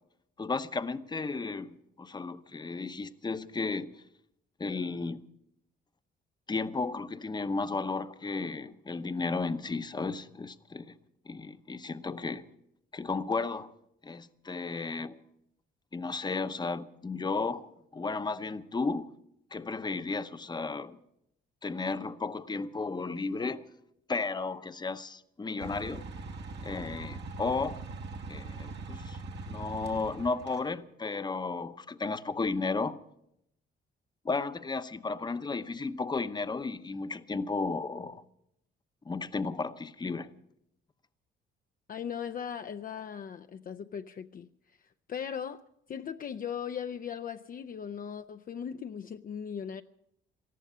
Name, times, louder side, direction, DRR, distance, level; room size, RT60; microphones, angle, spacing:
voice 1, 0.4-4.0 4.6-5.2 6.5-10.9 11.3-12.5 12.9-13.7 14.0-15.2 15.9-19.1 19.5-21.0 21.6-23.6 24.1-26.0 26.6-27.8 28.3-29.2 29.5-33.0 34.2-38.2 39.0-40.3, left 4 dB, 20° left, 0.8 m, -34 dB
sound 1, 25.6-30.6, right 3 dB, 60° right, 1.4 m, -41 dB
voice 2, 41.9-44.5 45.1-45.6 45.9-49.8, left 8 dB, 45° left, 0.6 m, -38 dB
18.5 x 13.5 x 5.5 m
cardioid pair, 90°, 20 cm